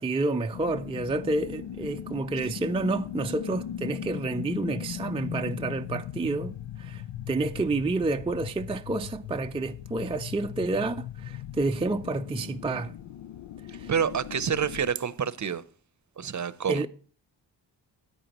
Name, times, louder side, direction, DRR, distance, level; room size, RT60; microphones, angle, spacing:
voice 1, 0.0-12.9 13.7-13.9 16.7-16.9, right 2 dB, 15° right, 0.4 m, -29 dB
sound 1, 0.5-14.9, left 10 dB, 85° left, 0.6 m, -39 dB
voice 2, 13.9-15.6 16.2-16.8, right 7 dB, 40° right, 0.7 m, -28 dB
13.5 x 9.7 x 3.0 m
cardioid pair, 80°, 44 cm